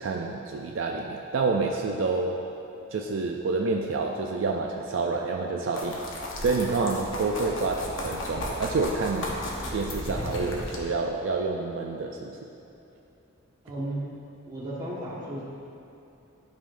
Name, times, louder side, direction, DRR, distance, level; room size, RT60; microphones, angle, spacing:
voice 1, 0.0-2.4 2.9-6.0 6.4-9.4 9.7-12.5, right 3 dB, 60° right, 1 dB, 0.4 m, -28 dB
sound 1, 5.7-10.8, left 1 dB, 65° left, 1.0 m, -35 dB
voice 2, 13.6-14.0 14.4-15.4, right 1 dB, 20° right, -8 dB, 1.4 m, -34 dB
11.5 x 4.8 x 2.6 m, 2.9 s
head